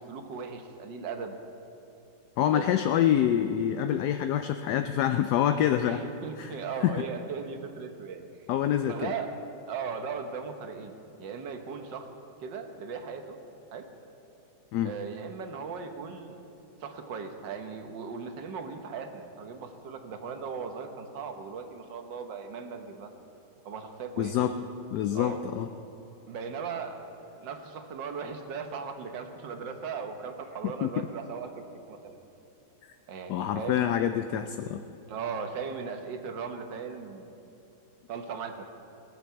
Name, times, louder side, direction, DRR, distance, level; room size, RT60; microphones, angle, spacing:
voice 1, 0.0-1.4 2.5-2.7 5.9-8.3 8.9-9.3 9.7-12.1 12.4-13.4 13.7-13.9 14.8-16.4 16.8-23.1 23.7-24.5 25.1-25.4 26.3-32.2 33.1-33.9 35.1-37.3 38.1-38.7, right 5 dB, 90° right, 6 dB, 1.8 m, -38 dB
voice 2, 2.4-6.0 6.4-6.5 6.8-7.0 8.5-9.1 14.7-14.9 24.2-24.6 24.9-25.7 30.8-31.1 33.3-34.8, left 10 dB, 75° left, 8 dB, 1.1 m, -26 dB
18.5 x 8.4 x 7.0 m, 2.9 s
omnidirectional pair, 1.9 m